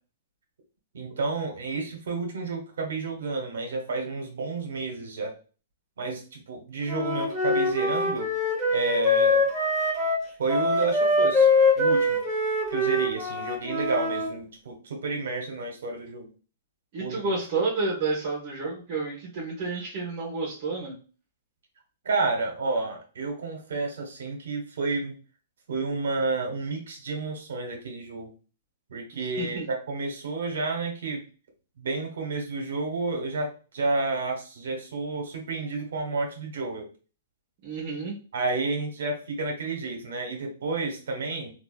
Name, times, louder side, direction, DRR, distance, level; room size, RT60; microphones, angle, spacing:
voice 1, 0.9-5.3 6.0-8.3 8.7-9.4 10.4-11.5 11.7-12.2 12.7-16.3 17.0-17.3 22.0-25.1 25.7-28.3 28.9-31.2 31.8-36.9 38.3-41.5, right 3 dB, 70° right, 3 dB, 1.2 m, -30 dB
Wind instrument woodwind instrument, 6.9-14.3, left 2 dB, 10° right, 1.7 m, -24 dB
voice 2, 16.9-20.9 29.1-29.7 37.6-38.1, right 3 dB, 50° right, -4 dB, 1.5 m, -30 dB
3.7 x 2.7 x 2.4 m, 0.36 s
hypercardioid pair, 115°, 0 cm